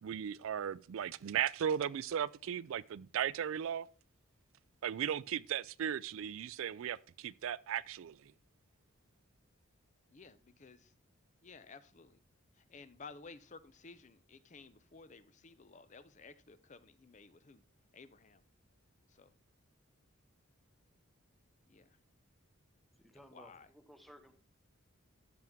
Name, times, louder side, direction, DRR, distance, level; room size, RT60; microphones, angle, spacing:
voice 1, 0.0-3.9 4.8-8.2, right 9 dB, 70° right, 0.3 m, -36 dB
voice 2, 10.1-10.9 11.4-12.2 12.5-17.6 17.9-18.4 19.1-19.3 21.7-22.0 23.1-23.7, left 4 dB, 35° left, 0.5 m, -55 dB
voice 3, 23.0-24.3, equal, ahead, 0.8 m, -58 dB
13.0 x 6.0 x 3.6 m
head